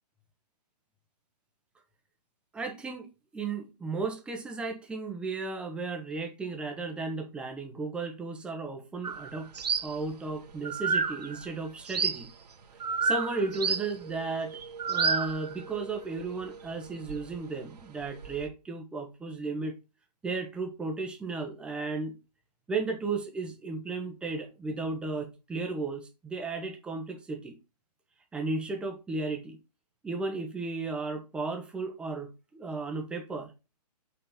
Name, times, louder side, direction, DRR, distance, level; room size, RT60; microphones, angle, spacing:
voice 1, 2.5-9.5 9.8-12.3 13.0-14.6 14.9-19.8 20.2-22.2 22.7-27.6 28.3-29.6 30.0-33.5, right 3 dB, 5° right, 0.8 m, -34 dB
sound 1, 9.0-10.3 10.6-11.5 11.9-12.2 12.8-17.4 17.8-18.4, right 5 dB, 70° right, 1.4 m, -31 dB
5.7 x 4.1 x 5.5 m
hypercardioid pair, 155°, 21 cm